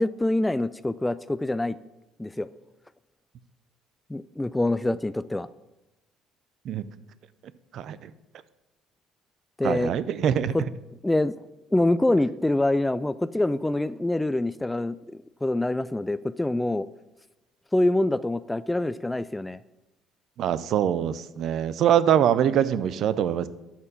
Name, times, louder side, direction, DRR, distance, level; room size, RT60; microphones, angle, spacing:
voice 1, 0.0-1.8 2.2-2.5 4.1-5.5 9.6-9.9 10.5-10.6 11.0-11.3 11.7-15.0 15.4-16.9 17.7-19.6, left 1 dB, 10° left, 15 dB, 0.3 m, -25 dB
voice 2, 7.7-8.1 9.6-10.5 20.4-23.5, right 9 dB, 55° right, 16 dB, 0.5 m, -23 dB
12.0 x 4.4 x 7.2 m, 0.98 s
figure-of-eight pair, 50°, 0 cm